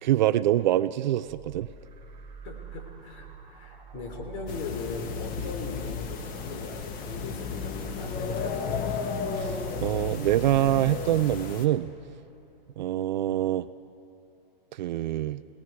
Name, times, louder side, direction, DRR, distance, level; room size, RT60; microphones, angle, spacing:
voice 1, 0.0-1.7 9.4-11.9 12.8-13.7 14.8-15.4, right 13 dB, 50° right, 15 dB, 0.5 m, -25 dB
sound 1, 1.2-12.6, right 7 dB, 15° right, 3.5 m, -48 dB
voice 2, 2.4-9.2 13.3-13.4, left 4 dB, 45° left, 3 dB, 3.9 m, -39 dB
sound 2, 4.5-11.7, left 6 dB, 30° left, 1.4 m, -33 dB
29.5 x 18.5 x 4.8 m, 2.9 s
hypercardioid pair, 125°, 30 cm